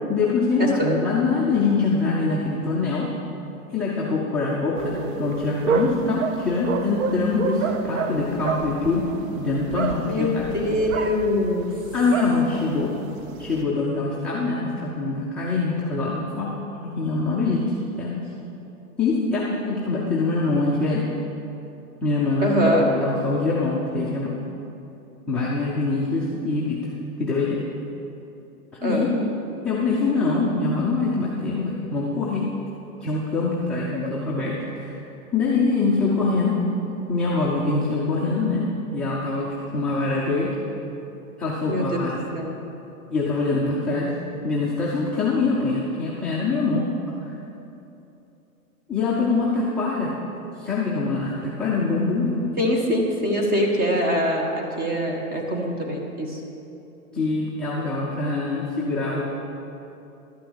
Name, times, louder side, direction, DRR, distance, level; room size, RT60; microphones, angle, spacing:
voice 1, 0.1-3.1 3.7-9.1 9.4-10.5 11.9-12.9 13.4-18.3 19.0-21.1 22.0-24.4 25.3-26.8 27.2-27.6 28.7-29.1 29.6-32.5 33.0-35.0 35.3-36.6 37.1-40.6 41.4-42.3 43.1-44.1 44.4-46.9 47.2-47.3 48.9-50.1 50.6-52.3 57.1-59.2, left 3 dB, ahead, -8 dB, 0.4 m, -24 dB
voice 2, 0.6-0.9 10.0-11.7 22.4-22.8 28.8-29.1 41.7-42.0 42.3-42.5 52.6-56.4, equal, 20° right, 0 dB, 1.7 m, -23 dB
sound 1, 4.7-13.6, right 5 dB, 60° right, 1.0 m, -29 dB
12.0 x 5.9 x 8.4 m, 2.9 s
hypercardioid pair, 135°, 44 cm